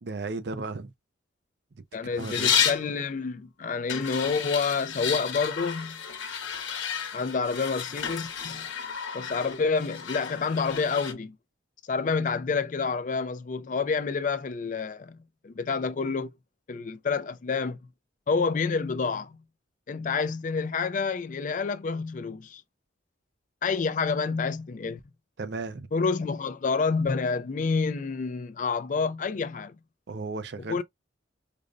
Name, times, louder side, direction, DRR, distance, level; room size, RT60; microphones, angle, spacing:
voice 1, 0.0-0.9 2.2-2.5 25.4-25.9 30.1-30.8, right 3 dB, 60° right, 0.5 m, -35 dB
voice 2, 1.9-6.0 7.1-8.7 9.1-11.3 11.9-15.2 15.4-16.3 16.7-17.8 18.3-19.4 19.9-22.6 23.6-25.0 25.9-29.7 30.7-30.8, left 4 dB, 40° left, 0.3 m, -28 dB
sound 1, 2.2-2.9 3.9-11.1, left 8 dB, 75° left, 1.0 m, -31 dB
5.0 x 2.1 x 2.5 m
head